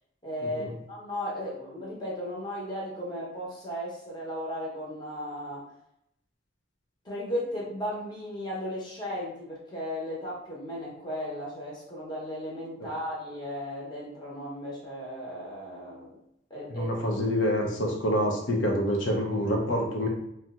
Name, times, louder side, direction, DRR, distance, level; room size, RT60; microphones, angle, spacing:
voice 1, 0.2-5.7 7.0-16.2 16.5-17.0, equal, 25° left, -5 dB, 0.9 m, -35 dB
voice 2, 16.7-20.1, equal, 85° left, 0 dB, 0.7 m, -27 dB
2.8 x 2.1 x 3.5 m, 0.77 s
head